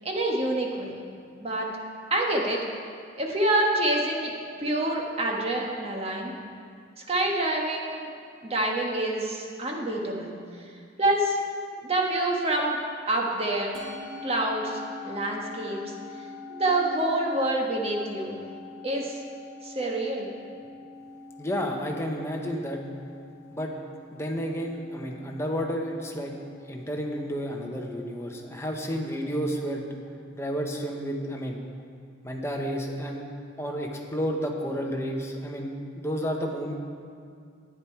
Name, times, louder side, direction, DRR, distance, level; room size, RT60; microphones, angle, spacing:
voice 1, 0.0-1.0 1.4-1.7 2.1-2.6 3.1-4.3 4.6-6.4 7.1-8.1 8.4-10.3 10.6-10.7 11.0-11.4 11.8-12.8 13.1-13.8 14.2-15.9 16.5-18.4 18.8-19.2 19.6-20.3, right 1 dB, 35° right, 0 dB, 1.3 m, -27 dB
Musical instrument, 13.7-32.2, left 3 dB, 90° right, 1.4 m, -45 dB
voice 2, 21.4-22.8 23.5-23.7 24.1-26.3 26.7-29.9 30.3-31.6 32.2-33.2 33.6-36.7, equal, 15° left, 1 dB, 1.0 m, -31 dB
10.5 x 9.3 x 4.6 m, 2.2 s
head